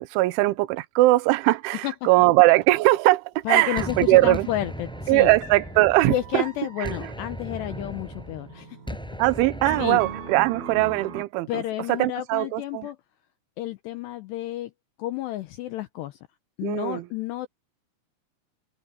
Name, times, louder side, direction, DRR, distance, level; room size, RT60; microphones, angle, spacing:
voice 1, 0.0-4.5 5.1-6.4 6.8-7.0 9.2-11.6 11.9-12.9 16.6-17.0, right 19 dB, 80° right, 3.2 m, -20 dB
voice 2, 3.5-5.3 6.1-9.0 9.8-10.0 11.5-13.0 13.6-14.7 15.0-16.2 16.6-17.5, left 14 dB, 80° left, 2.5 m, -31 dB
sound 1, 3.5-11.2, right 5 dB, 50° right, 6.8 m, -40 dB
Gunshot gunfire, 3.8-6.5 6.8-10.4, equal, ahead, 6.7 m, -37 dB
omnidirectional pair, 5.8 m